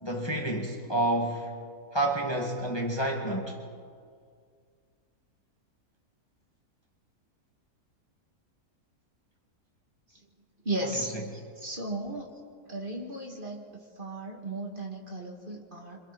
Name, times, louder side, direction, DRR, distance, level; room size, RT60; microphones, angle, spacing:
voice 1, 0.0-1.5 1.9-3.6 10.8-11.7, right 1 dB, 15° left, -1 dB, 2.0 m, -30 dB
voice 2, 10.6-11.1 11.6-12.3 12.7-13.6 14.0-16.0, right 2 dB, 35° right, 0 dB, 2.5 m, -35 dB
27.5 x 26.5 x 4.2 m, 2.2 s
omnidirectional pair, 1.6 m